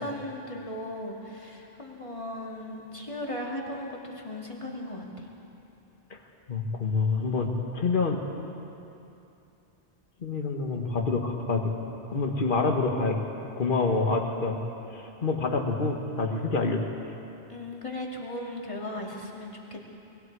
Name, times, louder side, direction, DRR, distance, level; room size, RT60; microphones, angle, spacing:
voice 1, 0.0-5.3 17.5-19.8, left 1 dB, 30° left, -2 dB, 2.5 m, -37 dB
voice 2, 6.5-8.2 10.2-11.7 12.1-13.2 13.6-14.6 14.9-16.9, left 3 dB, 50° left, 2 dB, 1.7 m, -27 dB
25.0 x 21.5 x 4.8 m, 2.8 s
omnidirectional pair, 1.1 m